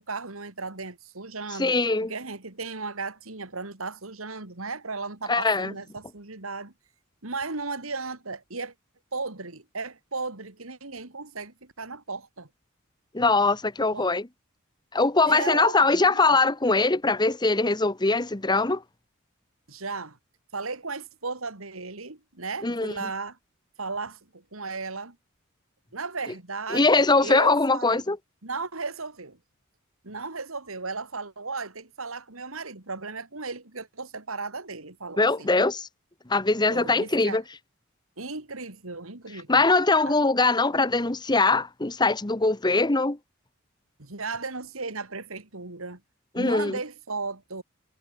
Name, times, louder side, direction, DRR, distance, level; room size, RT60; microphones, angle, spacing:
voice 1, 0.0-6.7 7.2-8.7 9.1-12.5 13.9-14.1 15.3-16.4 19.7-20.2 20.5-23.4 23.8-25.2 25.9-28.0 28.4-29.4 30.0-35.5 36.7-37.4 38.2-39.7 40.0-40.2 44.0-46.0 46.3-47.6, right 4 dB, 90° right, 3.1 m, -35 dB
voice 2, 1.6-2.1 5.3-5.7 13.1-14.3 14.9-18.8 22.6-22.9 26.7-28.2 35.2-35.9 36.3-37.4 39.5-43.2 46.3-46.8, left 3 dB, 20° left, 1.1 m, -22 dB
head